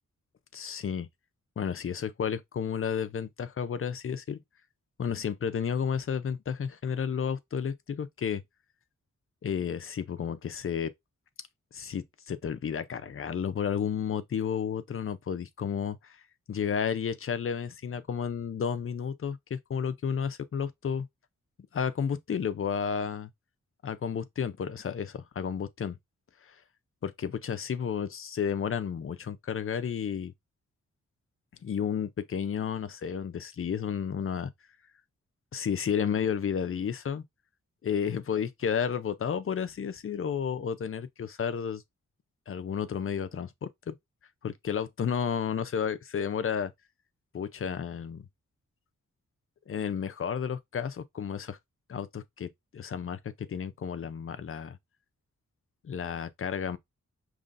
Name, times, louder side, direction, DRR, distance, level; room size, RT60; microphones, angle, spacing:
voice 1, 0.5-1.1 1.6-4.4 5.0-8.4 9.4-10.9 11.7-16.2 16.5-21.1 21.7-23.3 23.8-26.0 26.4-26.5 27.0-30.3 31.6-34.5 35.5-37.2 37.8-41.8 42.5-44.0 44.4-46.7 47.3-48.3 49.7-51.6 51.9-54.8 55.8-56.8, left 7 dB, 45° left, 0.5 m, -32 dB
5.3 x 3.1 x 2.5 m
wide cardioid pair, 155°, 30 cm